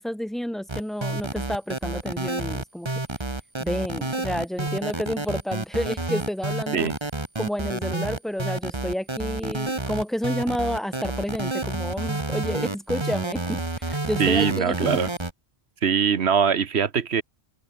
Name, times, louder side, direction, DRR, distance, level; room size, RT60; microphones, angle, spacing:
voice 1, 0.0-2.9 3.6-6.9 7.4-15.0, equal, ahead, 2.5 m, -30 dB
sound 1, 0.7-15.3, right 2 dB, 25° right, 1.8 m, -29 dB
voice 2, 14.2-15.1 15.8-17.2, right 7 dB, 75° right, 1.4 m, -22 dB
open air
omnidirectional pair, 1.1 m